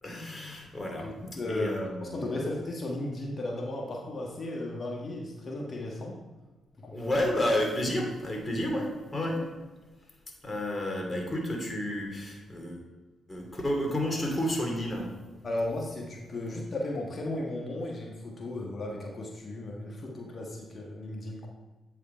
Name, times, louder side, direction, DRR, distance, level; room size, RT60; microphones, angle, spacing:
voice 1, 0.0-2.5 6.9-9.5 10.4-12.8 13.3-15.1, left 1 dB, 25° left, 1 dB, 2.5 m, -31 dB
voice 2, 1.0-6.2 6.8-7.1 15.4-21.5, left 1 dB, 45° left, -1 dB, 1.3 m, -35 dB
8.4 x 4.8 x 4.3 m, 1.2 s
supercardioid pair, 50°, 0 cm